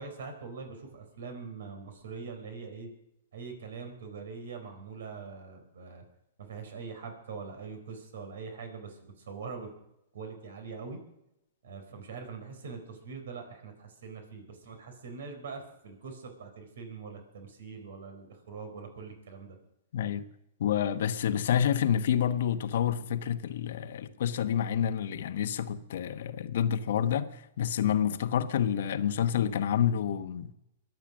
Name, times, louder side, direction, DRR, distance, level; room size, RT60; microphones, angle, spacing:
voice 1, 0.0-2.9 3.3-6.0 6.4-9.7 10.1-11.0 11.6-19.6, right 5 dB, 75° right, 4.3 m, -43 dB
voice 2, 19.9-20.2 20.6-30.5, left 9 dB, 70° left, 1.1 m, -28 dB
23.0 x 8.2 x 6.3 m
hypercardioid pair, 120°, 0 cm